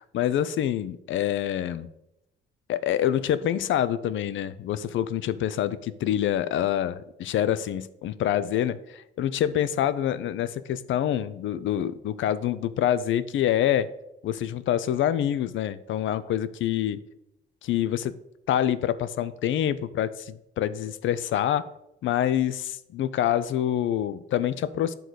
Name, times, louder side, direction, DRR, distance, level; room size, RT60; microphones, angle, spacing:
voice 1, 0.1-1.9 2.7-13.9 14.2-17.0 17.6-18.1 18.5-21.6 22.0-24.9, left 11 dB, 70° left, 15 dB, 0.6 m, -26 dB
9.3 x 3.9 x 6.3 m, 0.85 s
cardioid pair, 85°, 21 cm